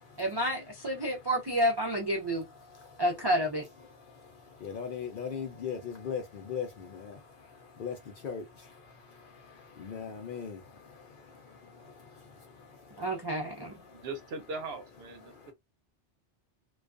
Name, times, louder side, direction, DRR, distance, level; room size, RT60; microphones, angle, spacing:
voice 1, 0.2-2.4 3.0-3.6 13.0-13.8, equal, 35° right, 0.4 m, -29 dB
voice 2, 2.6-3.0 4.1-13.2 13.8-14.1 15.2-15.5, left 7 dB, 60° left, 0.6 m, -41 dB
voice 3, 13.9-15.5, right 3 dB, 65° right, 0.8 m, -40 dB
2.3 x 2.2 x 2.4 m
omnidirectional pair, 1.2 m